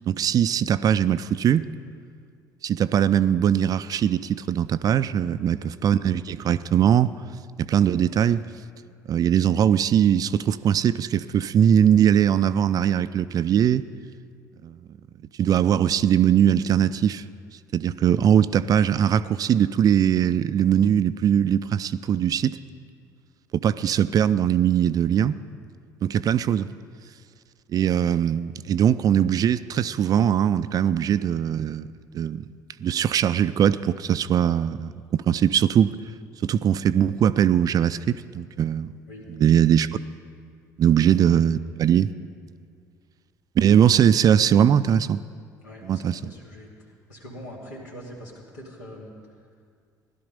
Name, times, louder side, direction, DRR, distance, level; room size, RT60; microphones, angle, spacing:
voice 1, 0.1-1.7 2.6-7.1 7.6-8.4 9.1-13.8 14.6-14.8 15.4-17.2 17.7-22.6 23.5-25.4 26.0-26.7 27.7-31.9 32.1-32.5 32.8-35.9 36.4-38.9 39.3-39.9 40.8-42.1 43.6-45.2 45.8-46.3, right 9 dB, 40° right, 15 dB, 0.4 m, -21 dB
voice 2, 5.2-5.7 39.1-39.3 40.8-41.0 45.6-46.7 47.1-49.1, equal, 75° left, -3 dB, 2.6 m, -43 dB
17.0 x 11.5 x 5.2 m, 2.1 s
figure-of-eight pair, 55°, 10 cm